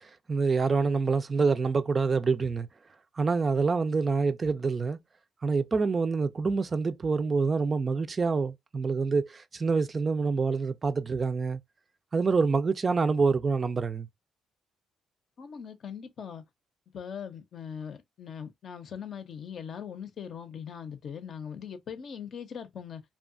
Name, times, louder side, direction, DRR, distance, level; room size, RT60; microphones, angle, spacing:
voice 1, 0.0-2.7 3.2-5.0 5.4-11.6 12.1-14.1, right 4 dB, 35° right, 0.3 m, -26 dB
voice 2, 15.4-16.4 16.9-23.0, left 7 dB, 60° left, 0.6 m, -40 dB
2.7 x 2.3 x 2.4 m
cardioid pair, 90°, 0 cm